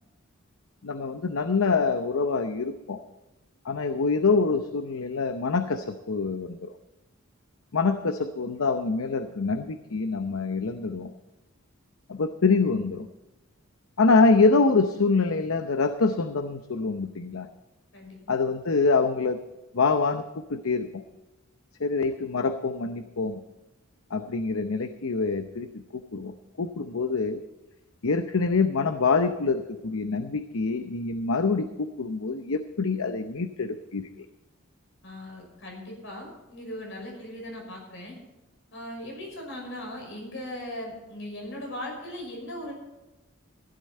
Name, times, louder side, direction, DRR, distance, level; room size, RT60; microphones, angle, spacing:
voice 1, 0.8-3.0 3.6-6.7 7.7-11.1 12.1-13.1 14.0-17.5 18.3-19.4 19.7-21.0 21.8-23.4 24.1-25.7 26.1-27.4 28.0-34.3, left 4 dB, 80° left, 9 dB, 0.7 m, -25 dB
voice 2, 35.0-38.2 38.7-42.7, left 1 dB, 65° left, 1 dB, 5.9 m, -38 dB
15.0 x 12.0 x 4.3 m, 1.0 s
head